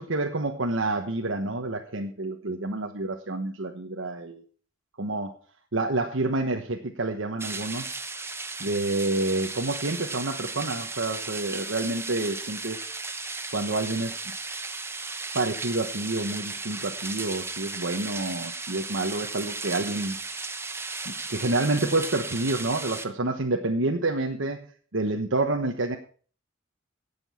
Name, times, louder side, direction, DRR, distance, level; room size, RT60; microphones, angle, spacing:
voice 1, 0.0-4.5 5.0-5.3 5.7-8.0 8.6-12.8 13.5-14.2 15.3-20.2 21.0-24.7 24.9-26.0, right 2 dB, 70° right, 2 dB, 1.2 m, -28 dB
sound 1, 7.4-23.1, right 3 dB, 15° right, 1.0 m, -35 dB
17.5 x 7.0 x 5.7 m, 0.43 s
head